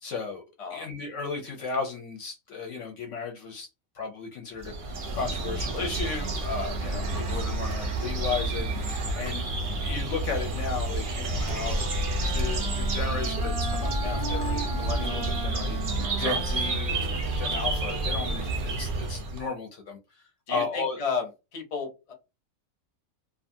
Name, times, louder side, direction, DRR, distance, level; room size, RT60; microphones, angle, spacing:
voice 1, 0.0-0.4 0.7-3.7 3.9-8.9 9.1-9.5 9.8-11.9 12.2-21.0, left 5 dB, 65° left, 0.8 m, -35 dB
sound 1, 4.6-19.5, right 2 dB, 55° right, 0.6 m, -29 dB
Wind instrument woodwind instrument, 11.3-18.7, right 2 dB, 5° right, 0.6 m, -38 dB
voice 2, 20.5-21.3 21.5-22.1, left 5 dB, 35° left, 0.7 m, -33 dB
2.6 x 2.3 x 2.6 m
omnidirectional pair, 1.5 m